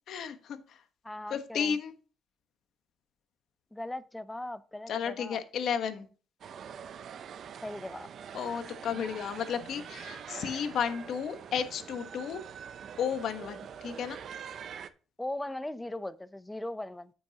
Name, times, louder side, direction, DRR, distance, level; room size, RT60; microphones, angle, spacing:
voice 1, 0.1-0.8 1.3-1.9 4.9-6.1 8.3-12.4 13.0-14.2, left 7 dB, 70° left, 1.2 m, -33 dB
voice 2, 1.0-1.8 3.7-5.4 7.6-8.1 15.2-17.1, left 1 dB, 10° left, 0.7 m, -39 dB
sound 1, 6.4-14.9, right 8 dB, 60° right, 0.7 m, -44 dB
9.2 x 8.5 x 2.9 m
cardioid pair, 90°, 0 cm